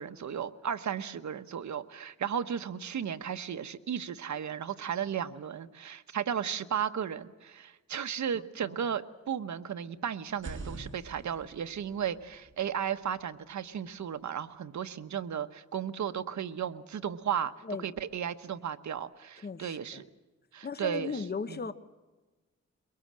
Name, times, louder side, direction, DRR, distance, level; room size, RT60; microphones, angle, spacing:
voice 1, 0.0-17.5 17.8-20.1 20.5-21.2 21.5-21.6, right 8 dB, 75° right, 1.2 m, -35 dB
sound 1, 10.3-14.1, right 3 dB, 45° right, 5.3 m, -47 dB
voice 2, 19.4-20.0 20.6-21.7, left 5 dB, 35° left, 1.2 m, -37 dB
23.0 x 22.5 x 7.6 m
cardioid pair, 85°, 29 cm